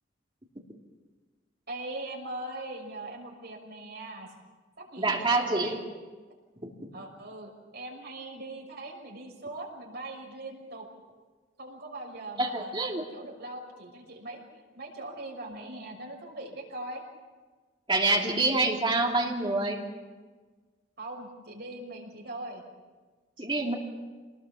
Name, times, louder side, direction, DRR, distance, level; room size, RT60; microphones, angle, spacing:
voice 1, 1.7-4.3 4.8-5.8 6.9-10.8 11.6-14.4 14.7-17.0 21.0-22.6, right 2 dB, 55° right, 1 dB, 5.9 m, -40 dB
voice 2, 5.0-5.8 6.6-6.7 12.4-13.0 17.9-19.8 23.4-23.7, right 2 dB, 25° right, 0 dB, 3.1 m, -26 dB
27.0 x 20.0 x 7.3 m, 1.4 s
head